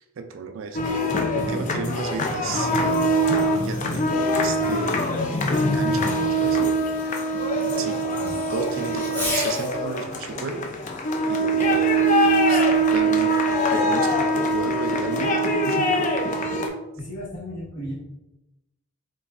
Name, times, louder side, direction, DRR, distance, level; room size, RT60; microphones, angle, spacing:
voice 1, 0.0-3.3 3.6-6.0 6.4-7.0 7.6-10.9 11.3-15.9, right 5 dB, 70° right, 7 dB, 0.4 m, -34 dB
sound 1, 0.7-16.7, right 1 dB, 35° left, 0.4 m, -23 dB
Fireworks, 2.1-9.8 11.6-12.6, left 1 dB, 10° left, 0.8 m, -39 dB
voice 2, 16.9-17.9, equal, 75° left, -11 dB, 1.2 m, -34 dB
4.1 x 3.1 x 2.4 m, 0.95 s
head